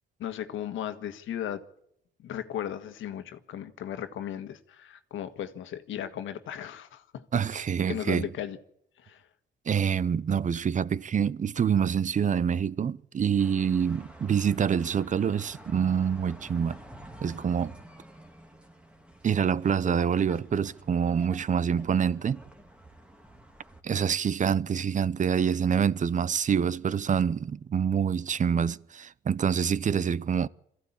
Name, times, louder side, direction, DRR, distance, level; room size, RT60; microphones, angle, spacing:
voice 1, 0.2-1.6 2.2-7.2 7.9-8.6 9.0-9.3, left 10 dB, 80° left, 1.6 m, -36 dB
voice 2, 7.3-8.3 9.7-16.8 17.2-17.8 19.2-22.4 23.8-30.5, right 7 dB, 40° right, 0.7 m, -26 dB
sound 1, 13.4-23.8, equal, 5° right, 2.3 m, -49 dB
23.0 x 15.0 x 8.7 m
cardioid pair, 90°, 20 cm